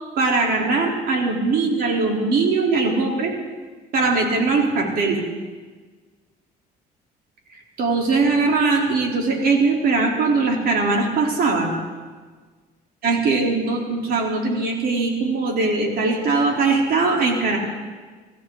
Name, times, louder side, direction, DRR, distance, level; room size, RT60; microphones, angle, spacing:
voice 1, 0.2-3.3 3.9-5.2 7.8-11.7 13.0-17.6, right 3 dB, 60° right, 0 dB, 3.5 m, -20 dB
25.5 x 14.5 x 3.9 m, 1.4 s
cardioid pair, 110°, 17 cm